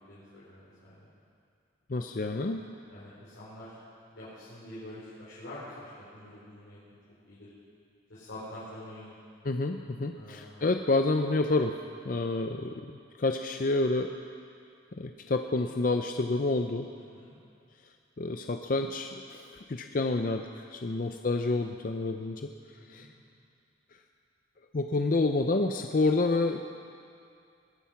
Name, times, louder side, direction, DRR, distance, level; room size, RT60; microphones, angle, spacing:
voice 1, 0.1-1.1 2.9-3.8 4.1-6.8 7.2-7.5 8.1-9.1 10.1-10.6 17.1-17.4 20.8-21.2 22.7-23.1, left 1 dB, 75° left, -11 dB, 4.5 m, -46 dB
voice 2, 1.9-2.6 9.4-11.8 12.0-14.1 15.0-16.9 18.2-22.5 22.9-23.1 24.7-26.6, left 2 dB, 45° left, 5 dB, 0.5 m, -29 dB
20.5 x 10.0 x 5.9 m, 2.4 s
head